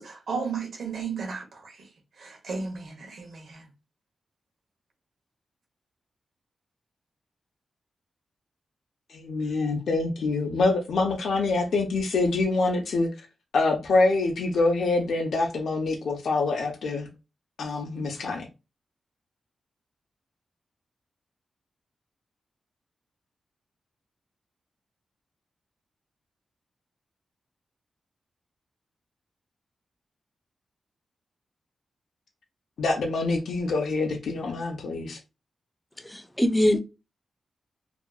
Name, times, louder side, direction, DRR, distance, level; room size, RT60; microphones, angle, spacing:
voice 1, 0.0-1.9 2.2-3.7, right 5 dB, 75° right, 1.0 m, -34 dB
voice 2, 9.1-13.3 13.5-17.1 17.6-18.5 32.8-35.2, left 3 dB, 85° left, 0.6 m, -25 dB
voice 3, 36.0-36.8, left 1 dB, 5° left, 0.4 m, -22 dB
2.7 x 2.5 x 2.3 m
wide cardioid pair, 145°, 0 cm